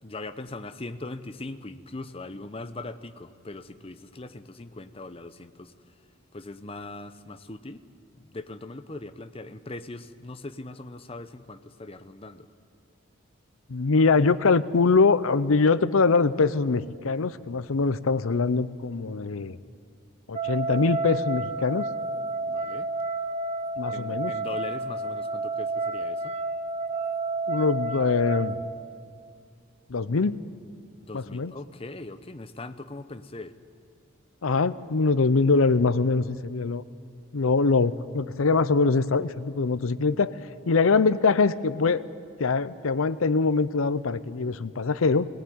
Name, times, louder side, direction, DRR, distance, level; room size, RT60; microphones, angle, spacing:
voice 1, 0.0-5.7 6.3-7.8 8.1-12.5 22.5-22.9 23.9-26.3 31.0-33.5, left 2 dB, 25° left, 11 dB, 0.7 m, -40 dB
voice 2, 13.7-19.6 20.3-21.9 23.8-24.3 27.5-28.6 29.9-30.4 31.1-31.5 34.4-36.8 37.3-40.3 40.7-42.1 42.4-45.3, left 4 dB, 75° left, 16 dB, 0.7 m, -23 dB
sound 1, 20.3-28.6, right 2 dB, 30° right, 0.7 m, -30 dB
19.0 x 18.5 x 9.4 m, 2.2 s
head